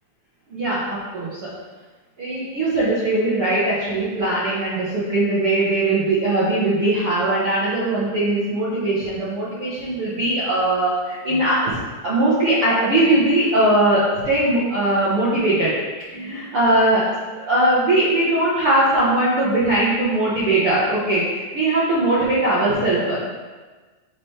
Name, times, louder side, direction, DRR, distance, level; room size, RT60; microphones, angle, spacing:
voice 1, 0.5-1.5 2.2-11.7 12.0-15.7 16.1-23.2, right 1 dB, 85° right, -10 dB, 1.2 m, -20 dB
8.1 x 4.4 x 3.3 m, 1.3 s
omnidirectional pair, 4.5 m